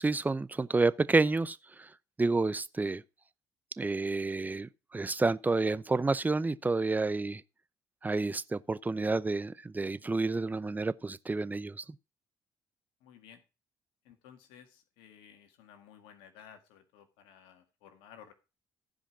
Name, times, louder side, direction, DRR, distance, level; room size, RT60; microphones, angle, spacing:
voice 1, 0.0-1.9 2.2-3.0 3.8-7.4 8.0-11.8, right 3 dB, 20° right, 0.7 m, -29 dB
voice 2, 13.0-13.4 14.0-18.3, left 8 dB, 85° left, 1.8 m, -55 dB
15.0 x 5.1 x 6.1 m
supercardioid pair, 65°, 9 cm